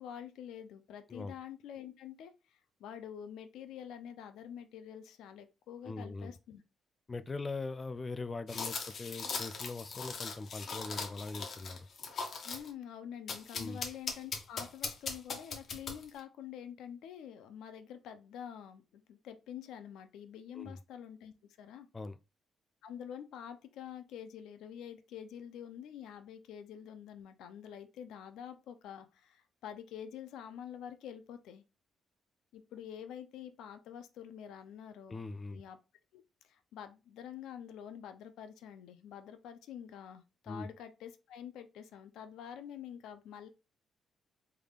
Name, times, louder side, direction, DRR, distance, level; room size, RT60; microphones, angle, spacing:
voice 1, 0.0-6.6 12.4-21.9 22.8-31.6 32.5-35.2 35.5-35.8 36.1-43.5, left 9 dB, 85° left, 0.5 m, -47 dB
voice 2, 5.8-6.3 7.1-11.9 13.5-13.8 20.5-20.8 21.9-22.2 35.1-35.6 40.5-40.7, left 3 dB, 30° left, 0.3 m, -41 dB
sound 1, 8.5-12.7 13.3-16.2, left 4 dB, 55° left, 0.9 m, -40 dB
3.5 x 3.3 x 2.4 m
cardioid pair, 90°, 0 cm